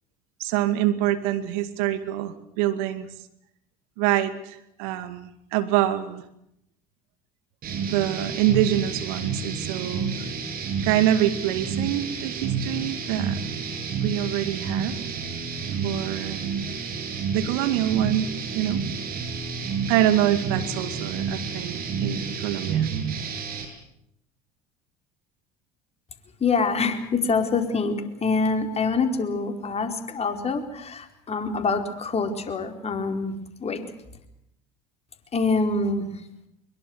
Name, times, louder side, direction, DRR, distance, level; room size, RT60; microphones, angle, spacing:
voice 1, 0.4-3.1 4.0-6.2 7.9-10.1 10.8-13.4 14.0-15.0 15.8-16.4 17.3-18.3 18.5-18.8 19.9-22.9, right 12 dB, 70° right, 10 dB, 2.2 m, -25 dB
sound 1, 7.6-23.7, right 5 dB, 50° right, 6.9 m, -30 dB
voice 2, 26.4-33.3 33.6-33.9 35.3-36.1, left 4 dB, 30° left, 5 dB, 4.5 m, -25 dB
23.0 x 22.5 x 8.1 m, 0.80 s
hypercardioid pair, 70°, 20 cm